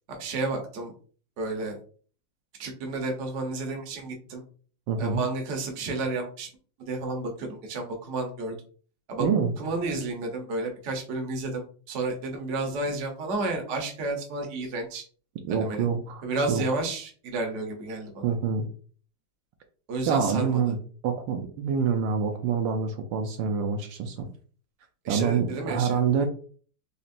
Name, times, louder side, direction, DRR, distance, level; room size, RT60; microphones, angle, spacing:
voice 1, 0.1-0.9 1.4-1.8 2.6-4.4 5.0-6.5 6.8-8.5 9.1-9.2 9.6-15.0 15.5-15.9 16.2-18.2 19.9-20.6 25.0-26.3, right 2 dB, 50° right, 2 dB, 1.0 m, -31 dB
voice 2, 4.9-5.2 9.2-9.5 15.4-16.2 16.5-16.6 18.2-18.7 20.1-24.3 25.1-26.3, right 6 dB, 75° right, 6 dB, 1.3 m, -26 dB
4.2 x 3.0 x 2.5 m, 0.42 s
omnidirectional pair, 2.1 m